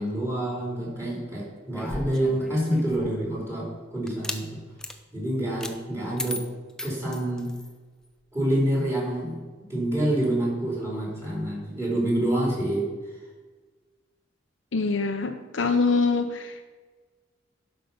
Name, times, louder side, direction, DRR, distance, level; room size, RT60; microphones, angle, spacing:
voice 1, 0.0-4.5 5.1-6.5 6.8-7.6 8.3-9.4 9.7-12.9, right 1 dB, 15° right, -4 dB, 3.6 m, -27 dB
sound 1, 1.7-3.3 4.1-4.4 4.8-5.0 5.6-5.8 6.2-7.7, left 1 dB, 5° left, 0.7 m, -36 dB
voice 2, 14.7-16.6, left 4 dB, 75° left, 5 dB, 0.7 m, -24 dB
12.0 x 5.6 x 5.4 m, 1.3 s
head